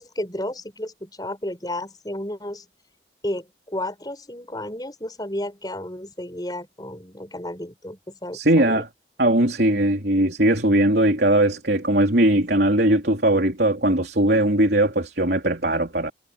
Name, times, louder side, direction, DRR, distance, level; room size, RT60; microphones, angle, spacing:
voice 1, 0.0-2.7 3.2-8.8, left 1 dB, 20° left, 5.8 m, -32 dB
voice 2, 8.3-8.9 9.2-16.1, right 1 dB, 60° right, 3.6 m, -19 dB
head